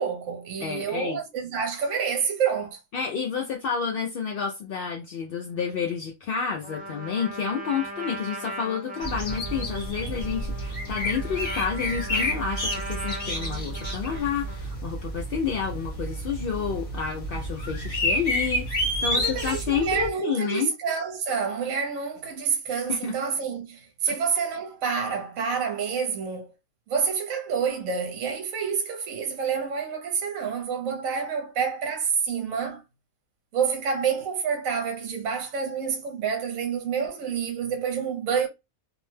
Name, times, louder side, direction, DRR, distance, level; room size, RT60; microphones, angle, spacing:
voice 1, 0.0-2.8 19.1-26.5 26.9-32.8 33.5-38.5, right 6 dB, 75° right, 1.0 m, -28 dB
voice 2, 0.6-1.2 2.9-20.7 22.9-23.1 24.1-24.2, left 6 dB, 75° left, 0.5 m, -30 dB
Trumpet, 6.6-14.7, right 1 dB, 10° right, 0.4 m, -39 dB
sound 1, 9.0-20.1, equal, 45° left, 1.0 m, -30 dB
2.6 x 2.1 x 3.1 m
omnidirectional pair, 1.5 m